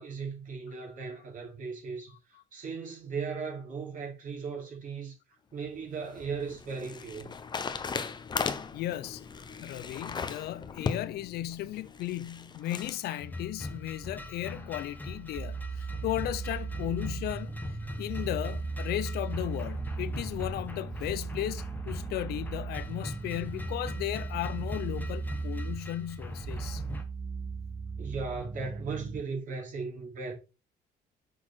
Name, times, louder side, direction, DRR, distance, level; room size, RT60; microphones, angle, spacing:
voice 1, 0.0-2.2 2.5-5.1 5.5-7.3 28.0-30.3, right 5 dB, 50° right, 3.3 m, -37 dB
sound 1, 5.7-13.0, left 5 dB, 25° left, 0.6 m, -37 dB
voice 2, 8.7-9.3 9.6-17.5 18.0-26.8, left 13 dB, 70° left, 0.5 m, -35 dB
sound 2, 12.8-27.0, left 1 dB, 10° left, 1.2 m, -42 dB
sound 3, 15.4-29.2, right 4 dB, 20° right, 0.5 m, -37 dB
6.2 x 4.6 x 4.3 m
cardioid pair, 110°, 17 cm